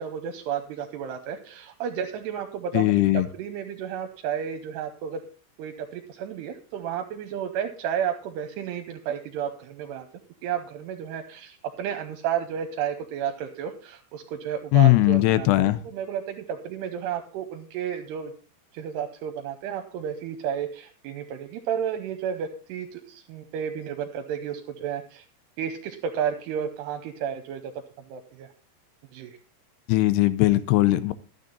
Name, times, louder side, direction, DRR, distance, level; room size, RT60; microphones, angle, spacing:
voice 1, 0.0-5.2 5.6-10.1 10.4-18.3 18.7-25.2 25.6-27.7 28.1-28.5 29.1-29.4, right 8 dB, 80° right, 6 dB, 2.8 m, -32 dB
voice 2, 2.7-3.3 14.7-15.8 29.9-31.1, left 17 dB, 80° left, 15 dB, 2.5 m, -19 dB
12.0 x 9.1 x 3.9 m, 0.38 s
omnidirectional pair, 4.9 m